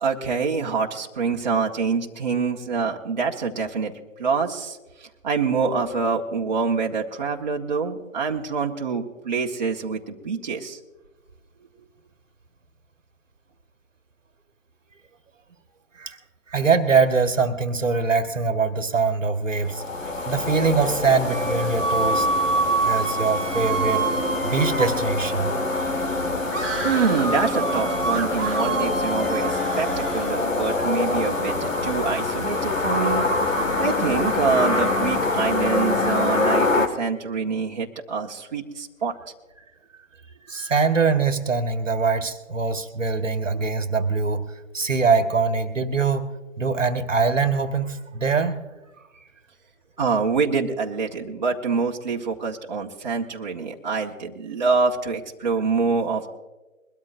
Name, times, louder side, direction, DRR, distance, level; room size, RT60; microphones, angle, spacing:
voice 1, 0.0-3.9 4.2-10.8 26.8-33.2 33.8-39.1 50.0-56.3, right 5 dB, 35° right, -1 dB, 1.5 m, -26 dB
voice 2, 16.5-22.3 22.8-24.0 24.4-25.5 26.1-26.2 40.5-44.4 44.7-46.3 46.6-48.6, right 4 dB, 65° right, 7 dB, 1.6 m, -23 dB
sound 1, 19.6-36.9, left 2 dB, 75° left, 2.0 m, -25 dB
sound 2, 21.3-25.0 26.5-30.4, right 3 dB, ahead, 1.1 m, -27 dB
22.5 x 13.0 x 2.6 m, 1.2 s
figure-of-eight pair, 150°, 40 cm